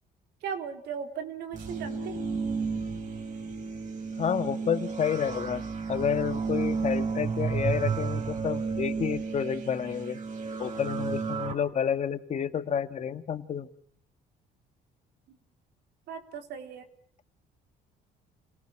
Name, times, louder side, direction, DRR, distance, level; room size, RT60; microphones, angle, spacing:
voice 1, 0.4-2.2 15.3-15.4 16.1-16.9, right 7 dB, 80° right, 6 dB, 3.7 m, -37 dB
sound 1, 1.5-11.5, right 5 dB, 50° right, 4.6 m, -32 dB
voice 2, 4.2-5.6 5.9-10.2 10.6-13.7, left 8 dB, 40° left, 10 dB, 1.8 m, -30 dB
29.5 x 18.5 x 7.3 m, 0.64 s
cardioid pair, 110°, 17 cm